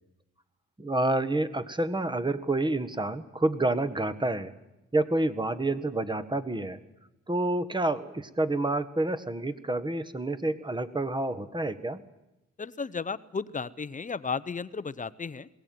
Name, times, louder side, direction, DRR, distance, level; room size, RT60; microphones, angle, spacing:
voice 1, 0.8-4.5 4.9-6.8 7.3-12.0, right 2 dB, 15° right, 12 dB, 1.6 m, -28 dB
voice 2, 12.6-15.5, left 5 dB, 25° left, 16 dB, 0.9 m, -34 dB
21.5 x 17.5 x 9.4 m, 0.95 s
cardioid pair, 90°, 30 cm